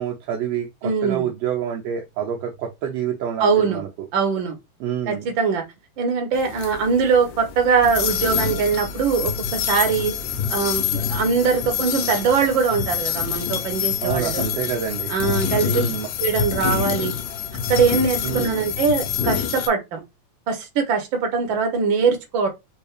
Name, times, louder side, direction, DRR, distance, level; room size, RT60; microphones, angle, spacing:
voice 1, 0.0-3.9 4.8-5.3 14.0-15.1 15.6-16.1 18.2-18.6, right 9 dB, 80° right, 1.6 m, -27 dB
voice 2, 0.8-1.3 3.4-3.8 4.1-4.6 5.1-5.6 6.0-10.1 10.5-14.4 15.1-15.7 16.2-17.1 17.7-20.0 20.5-22.5, right 5 dB, 55° right, 1.5 m, -21 dB
sound 1, 6.3-19.7, left 9 dB, 75° left, 1.8 m, -26 dB
4.6 x 2.7 x 3.3 m
omnidirectional pair, 3.3 m